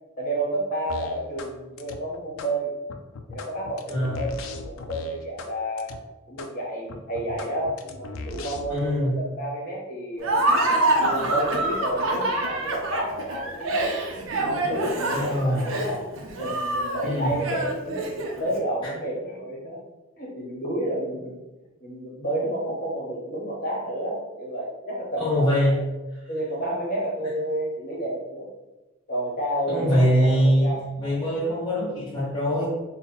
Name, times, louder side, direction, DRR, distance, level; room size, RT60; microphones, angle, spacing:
voice 1, 0.2-2.7 3.3-5.9 6.3-10.3 11.0-13.9 14.4-18.1 18.4-19.8 20.2-21.4 21.8-25.7 26.3-28.5 29.1-30.8, right 1 dB, 45° left, -3 dB, 1.1 m, -30 dB
sound 1, 0.9-1.5 1.8-2.5 2.9-5.5 5.8-6.0 6.4-6.5 6.9-8.9, left 3 dB, 75° left, 0.4 m, -38 dB
voice 2, 3.9-4.3 8.7-9.2 15.1-15.7 17.0-17.3 18.8-18.9 25.2-25.8 29.7-32.7, equal, 20° left, -9 dB, 0.7 m, -23 dB
Laughter, 10.2-18.5, right 1 dB, 70° right, 0.6 m, -26 dB
3.8 x 2.2 x 3.9 m, 1.1 s
head